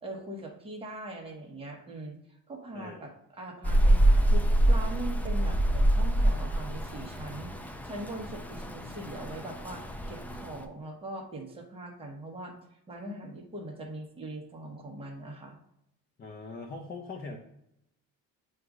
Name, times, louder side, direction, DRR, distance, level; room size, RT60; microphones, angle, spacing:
voice 1, 0.0-2.2 2.5-12.5 12.9-15.6, right 1 dB, 15° right, 0 dB, 1.1 m, -41 dB
voice 2, 2.7-3.1 16.2-17.4, left 3 dB, 25° left, 2 dB, 0.7 m, -41 dB
Rain, 3.6-10.6, right 1 dB, 5° left, 0.3 m, -26 dB
7.6 x 2.6 x 4.8 m, 0.79 s
cardioid pair, 125°, 38 cm